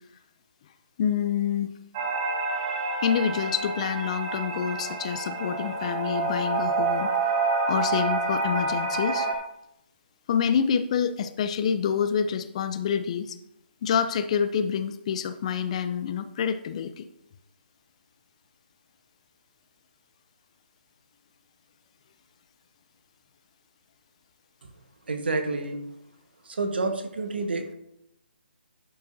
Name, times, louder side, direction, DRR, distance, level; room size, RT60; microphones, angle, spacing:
voice 1, 1.0-1.7 3.0-7.1 7.7-9.3 10.3-13.4 13.8-17.1, left 7 dB, 35° left, 11 dB, 0.4 m, -27 dB
sound 1, 1.9-9.3, right 3 dB, 30° right, 0.9 m, -28 dB
voice 2, 25.1-25.8 26.6-27.7, right 3 dB, 65° right, 7 dB, 1.2 m, -28 dB
11.0 x 5.5 x 2.6 m, 0.78 s
figure-of-eight pair, 145°, 6 cm